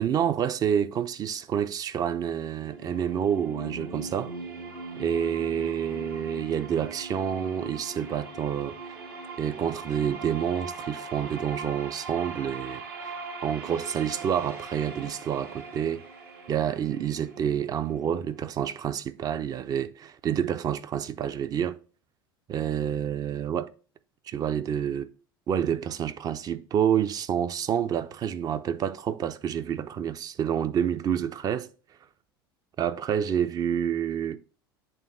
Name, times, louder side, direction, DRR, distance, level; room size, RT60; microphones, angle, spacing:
voice 1, 0.0-4.3 5.0-8.8 9.4-13.1 13.4-16.0 16.5-21.8 22.5-23.7 24.3-25.1 25.5-31.7 32.8-34.4, right 9 dB, 30° right, 0.5 m, -28 dB
sound 1, 2.4-18.4, right 3 dB, 70° right, 1.4 m, -41 dB
8.0 x 3.6 x 3.7 m
figure-of-eight pair, 75°, 12 cm